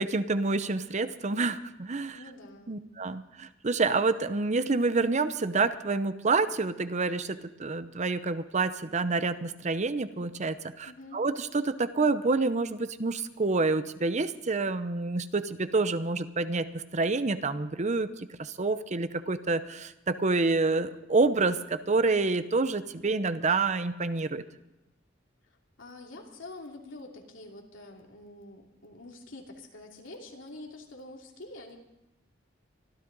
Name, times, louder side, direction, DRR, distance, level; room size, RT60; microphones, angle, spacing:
voice 1, 0.0-2.2 2.7-24.4, right 3 dB, 40° right, 12 dB, 0.7 m, -28 dB
voice 2, 2.1-2.8 10.8-11.2 25.8-31.8, left 2 dB, 90° left, 1 dB, 2.7 m, -46 dB
24.5 x 13.5 x 4.0 m, 0.93 s
head